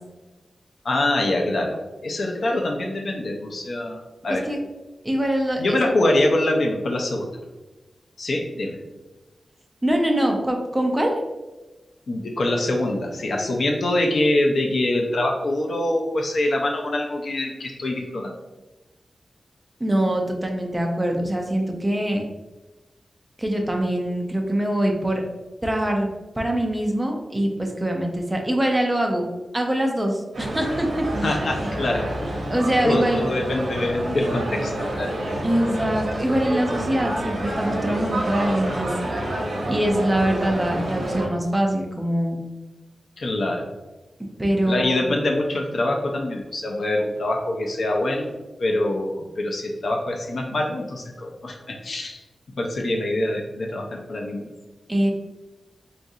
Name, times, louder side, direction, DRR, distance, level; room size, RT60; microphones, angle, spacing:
voice 1, 0.8-4.5 5.6-7.3 8.2-8.8 12.1-18.3 31.2-32.1 32.8-35.1 43.2-43.7 44.6-52.2 52.6-54.5, left 1 dB, 60° left, 1 dB, 0.4 m, -24 dB
voice 2, 5.0-5.8 9.8-11.1 19.8-22.2 23.4-25.2 25.6-29.2 29.5-31.1 32.5-33.3 35.4-38.9 39.7-42.4 44.4-45.0 54.9-55.1, right 1 dB, 10° right, 2 dB, 0.5 m, -23 dB
sound 1, 30.3-41.3, right 1 dB, 70° right, 0.8 m, -28 dB
3.9 x 2.4 x 2.6 m, 1.1 s
wide cardioid pair, 140°, 0 cm